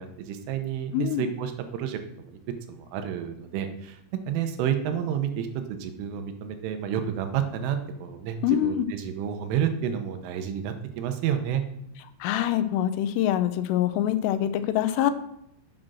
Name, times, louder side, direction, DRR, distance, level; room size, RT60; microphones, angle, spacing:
voice 1, 0.0-2.0 2.3-2.4 2.7-11.6, right 9 dB, 80° right, 7 dB, 3.4 m, -30 dB
voice 2, 0.9-1.3 8.4-8.9 12.2-15.1, left 11 dB, 80° left, 11 dB, 3.1 m, -24 dB
8.8 x 7.6 x 6.3 m, 0.77 s
omnidirectional pair, 5.9 m